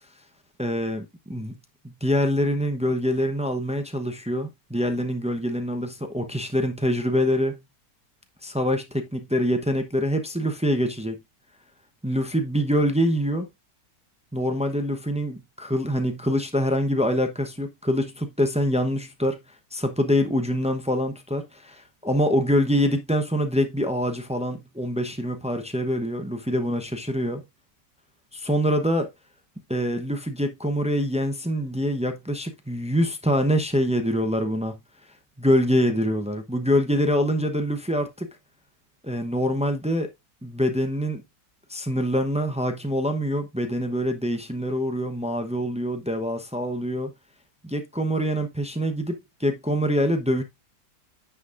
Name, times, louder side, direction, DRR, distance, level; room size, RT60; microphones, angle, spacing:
voice 1, 0.6-1.6 1.8-7.6 8.4-11.2 12.0-13.5 14.3-19.4 19.7-27.4 28.3-29.1 29.7-34.8 35.4-38.3 39.0-40.1 40.4-41.2 41.7-47.1 47.6-50.4, equal, 10° right, 0.3 m, -25 dB
9.7 x 6.1 x 2.5 m
omnidirectional pair, 1.9 m